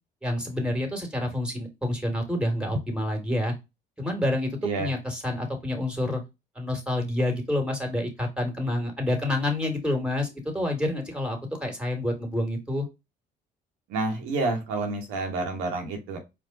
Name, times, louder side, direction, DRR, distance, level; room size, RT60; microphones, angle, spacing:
voice 1, 0.2-3.5 4.0-6.2 6.6-12.9, left 1 dB, 5° right, 4 dB, 1.9 m, -28 dB
voice 2, 13.9-16.2, right 3 dB, 80° right, 2 dB, 1.0 m, -29 dB
4.6 x 2.2 x 3.8 m, 0.23 s
hypercardioid pair, 55°, 21 cm